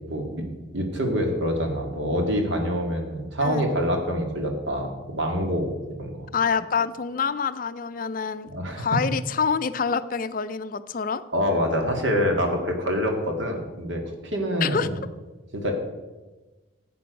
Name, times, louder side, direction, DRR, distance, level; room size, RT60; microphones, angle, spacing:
voice 1, 0.1-0.4 0.7-5.7 6.0-6.2 8.5-8.9 11.3-15.0 15.5-15.7, equal, 65° right, 3 dB, 1.9 m, -26 dB
voice 2, 6.3-8.5 8.8-11.2 14.6-14.9, left 6 dB, 40° left, 13 dB, 0.4 m, -26 dB
11.5 x 8.5 x 5.2 m, 1.2 s
head